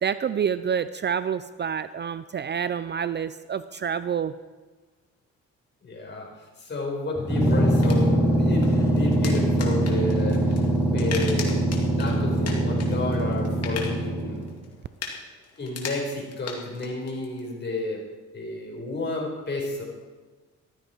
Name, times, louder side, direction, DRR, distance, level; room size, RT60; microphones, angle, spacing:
voice 1, 0.0-4.3, right 7 dB, 35° right, 14 dB, 0.5 m, -28 dB
voice 2, 5.8-6.3 6.6-10.6 10.9-11.6 12.0-14.5 15.6-18.0 18.3-19.8, left 2 dB, 35° left, 0 dB, 4.8 m, -31 dB
sound 1, 7.2-14.5, right 1 dB, 5° right, 5.6 m, -23 dB
sound 2, 7.4-17.4, left 5 dB, 55° left, 2.6 m, -40 dB
14.5 x 13.0 x 4.6 m, 1.3 s
cardioid pair, 90°, 30 cm